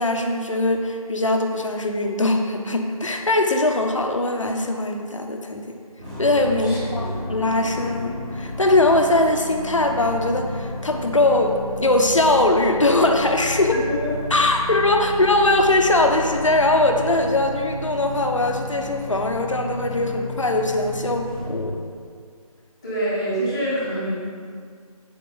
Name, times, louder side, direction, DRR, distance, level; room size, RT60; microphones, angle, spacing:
voice 1, 0.0-5.8 6.2-13.8 14.3-21.8, left 2 dB, 55° left, 3 dB, 1.1 m, -21 dB
sound 1, 6.0-21.7, left 1 dB, 15° right, 2.1 m, -32 dB
voice 2, 6.6-7.1 14.0-14.1 22.8-24.1, right 1 dB, 10° left, -13 dB, 1.5 m, -26 dB
9.1 x 7.7 x 4.0 m, 2.1 s
figure-of-eight pair, 175°, 19 cm